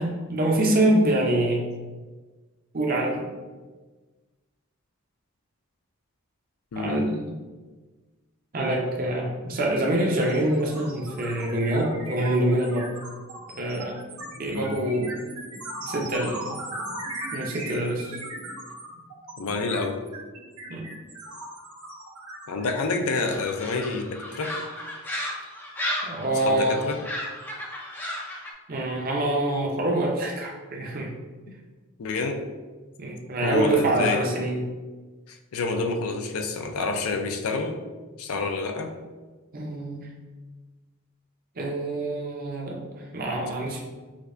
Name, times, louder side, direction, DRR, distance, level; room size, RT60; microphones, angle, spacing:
voice 1, 0.0-1.6 2.7-3.3 6.8-7.3 8.5-12.9 13.6-14.0 14.4-15.1 15.9-16.4 17.3-18.2 20.7-20.9 26.0-26.8 28.7-31.1 33.0-34.6 39.5-40.1 41.6-43.8, right 1 dB, 40° right, 0 dB, 0.6 m, -25 dB
voice 2, 6.7-7.0 14.5-14.8 19.4-20.0 22.5-24.6 26.4-27.0 32.0-32.4 33.4-34.3 35.3-37.7 38.2-38.9, left 3 dB, 75° left, 5 dB, 0.4 m, -28 dB
sound 1, 9.1-9.3 9.6-23.9, right 2 dB, 85° right, 0.8 m, -38 dB
sound 2, 23.2-28.5, left 1 dB, 10° left, 0.3 m, -34 dB
5.0 x 2.1 x 2.5 m, 1.3 s
head